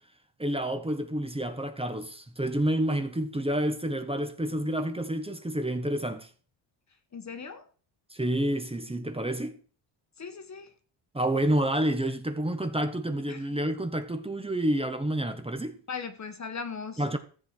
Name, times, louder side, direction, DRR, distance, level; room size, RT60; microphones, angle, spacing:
voice 1, 0.4-6.3 8.1-9.6 11.1-15.8 17.0-17.2, right 1 dB, 10° right, 1.5 m, -29 dB
voice 2, 7.1-7.7 10.2-10.7 13.3-13.5 15.9-17.0, left 5 dB, 35° left, 1.5 m, -38 dB
14.0 x 8.3 x 4.7 m
cardioid pair, 110°, 49 cm